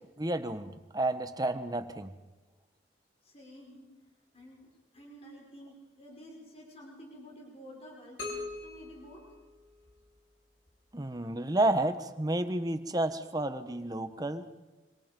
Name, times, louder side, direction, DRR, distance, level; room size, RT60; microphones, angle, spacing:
voice 1, 0.2-2.1 10.9-14.4, right 1 dB, 20° right, 9 dB, 1.2 m, -31 dB
voice 2, 3.2-4.1 4.3-9.2, equal, 30° left, -1 dB, 5.7 m, -51 dB
sound 1, 8.2-10.1, left 3 dB, 75° left, 6.1 m, -42 dB
26.5 x 26.0 x 5.4 m, 1.1 s
head